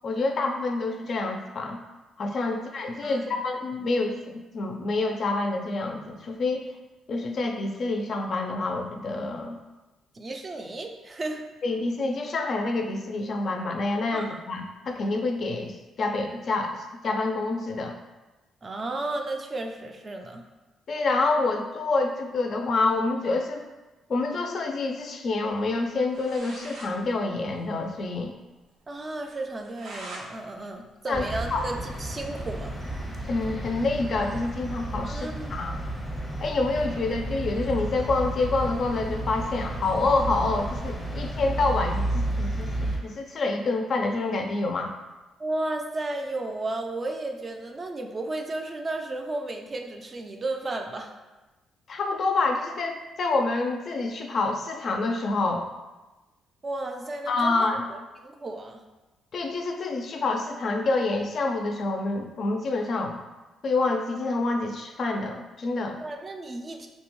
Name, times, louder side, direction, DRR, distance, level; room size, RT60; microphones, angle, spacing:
voice 1, 0.0-1.8 2.2-6.7 7.1-9.6 11.6-15.7 16.0-16.8 17.0-18.0 20.9-23.6 24.1-28.3 31.1-31.7 33.3-35.8 36.4-44.9 51.9-55.7 57.3-57.8 59.3-63.2 63.6-66.0, left 3 dB, 55° left, 3 dB, 0.3 m, -27 dB
voice 2, 3.0-3.4 10.1-11.4 14.1-14.4 18.6-20.4 28.9-32.7 35.0-35.6 45.4-51.1 56.6-58.8 66.0-66.9, right 2 dB, 35° right, 4 dB, 0.3 m, -34 dB
sound 1, 25.8-25.9 26.1-26.9 27.3-27.4 27.6-27.7 28.1-28.2 28.6-28.7 29.3-30.3 30.6-32.0, right 2 dB, 85° right, 0.5 m, -43 dB
sound 2, 31.1-43.0, right 1 dB, 10° left, 0.6 m, -32 dB
2.7 x 2.2 x 2.9 m, 1.1 s
cardioid pair, 90°, 0 cm